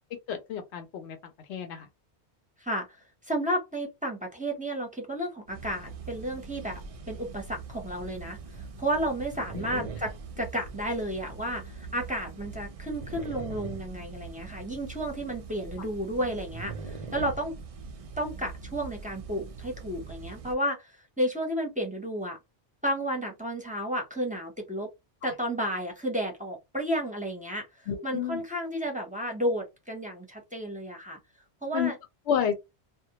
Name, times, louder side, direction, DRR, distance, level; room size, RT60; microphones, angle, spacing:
voice 1, 0.3-1.2 1.5-1.9 9.5-9.9 25.2-25.3 27.9-28.4 31.7-31.9 32.3-32.6, left 8 dB, 80° left, 0.9 m, -30 dB
voice 2, 3.2-6.8 7.1-17.5 18.2-22.4 22.8-24.9 25.2-27.7 28.0-31.2 31.6-32.0, equal, 10° right, 0.6 m, -32 dB
sound 1, 5.5-20.5, right 4 dB, 60° right, 0.3 m, -42 dB
2.2 x 2.1 x 2.7 m
omnidirectional pair, 1.1 m